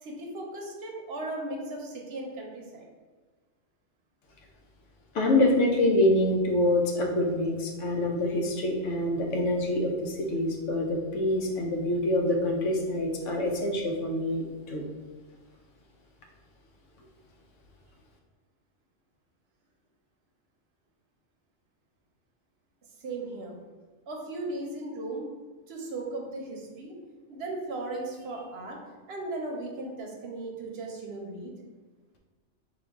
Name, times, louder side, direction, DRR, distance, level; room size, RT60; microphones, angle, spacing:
voice 1, 0.0-2.9 23.0-23.6 24.1-25.3 25.7-26.9 27.3-28.8 29.1-31.5, right 2 dB, 65° right, 0 dB, 0.9 m, -37 dB
voice 2, 5.1-14.8, left 1 dB, 90° left, 1 dB, 1.0 m, -26 dB
3.8 x 2.6 x 3.4 m, 1.3 s
omnidirectional pair, 1.2 m